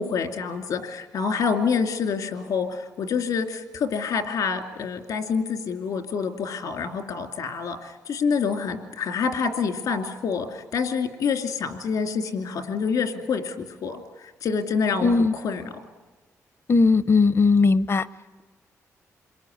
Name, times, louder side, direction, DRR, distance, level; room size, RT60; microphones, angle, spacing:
voice 1, 0.0-15.6, left 5 dB, 80° left, 5 dB, 2.6 m, -27 dB
voice 2, 15.0-15.3 16.7-18.1, left 4 dB, 45° left, 16 dB, 0.8 m, -18 dB
27.0 x 22.0 x 9.5 m, 1.2 s
cardioid pair, 70°, 6 cm